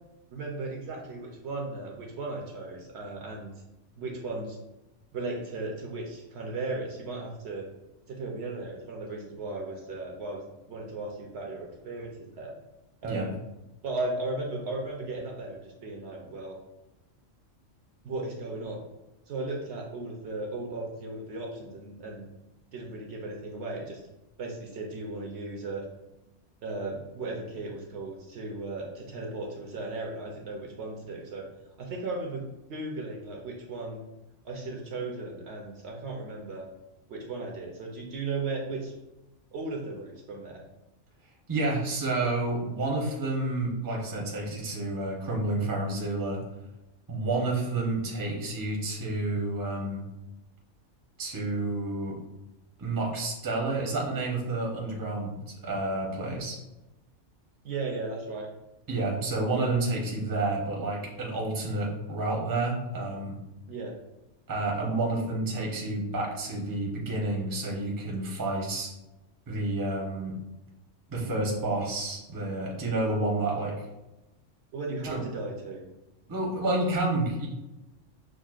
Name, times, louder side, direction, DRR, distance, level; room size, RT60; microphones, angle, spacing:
voice 1, 0.3-3.5 4.0-4.6 5.1-7.7 8.1-12.5 13.0-13.3 13.8-16.6 18.0-18.8 19.3-22.3 22.7-24.0 24.4-25.8 26.6-31.5 31.8-32.4 32.7-34.0 34.4-36.6 37.1-38.9 39.5-40.6 57.6-58.5 63.7-64.0 74.7-75.8, right 2 dB, 65° right, -1 dB, 0.8 m, -36 dB
voice 2, 41.5-46.4 47.1-50.0 51.2-52.2 52.8-56.6 58.9-63.4 64.5-68.9 69.5-70.4 71.1-73.7 75.1-75.2 76.3-77.5, right 2 dB, 20° right, -2 dB, 0.6 m, -30 dB
6.1 x 2.1 x 2.3 m, 0.98 s
omnidirectional pair, 1.3 m